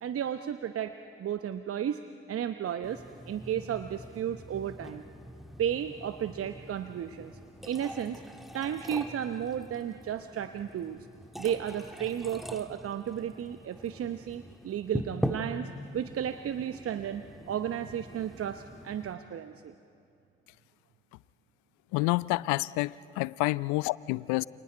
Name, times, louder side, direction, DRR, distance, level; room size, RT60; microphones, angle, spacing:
voice 1, 0.0-2.0 2.3-5.0 5.6-7.4 7.6-8.2 8.5-11.1 11.4-19.7, right 9 dB, 50° right, 10 dB, 0.9 m, -33 dB
sound 1, 2.8-19.1, equal, ahead, 1.7 m, -42 dB
voice 2, 21.9-24.5, left 22 dB, 75° left, 21 dB, 0.5 m, -28 dB
28.5 x 28.5 x 5.0 m, 2.6 s
hypercardioid pair, 45°, 29 cm